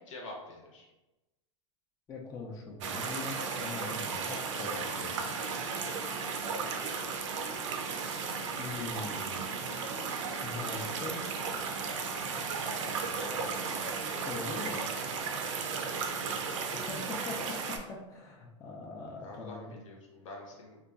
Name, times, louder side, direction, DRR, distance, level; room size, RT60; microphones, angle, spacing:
voice 1, 0.1-0.9 9.0-9.1 12.8-13.5 15.9-16.2 19.2-20.8, left 2 dB, 75° left, 0 dB, 0.8 m, -47 dB
voice 2, 2.1-5.4 8.6-9.5 10.4-11.2 14.2-14.9 16.7-19.8, left 3 dB, 20° left, -1 dB, 0.4 m, -42 dB
sound 1, 2.8-17.8, right 5 dB, 70° right, 0.5 m, -35 dB
2.7 x 2.3 x 2.3 m, 1.0 s
hypercardioid pair, 115°, 16 cm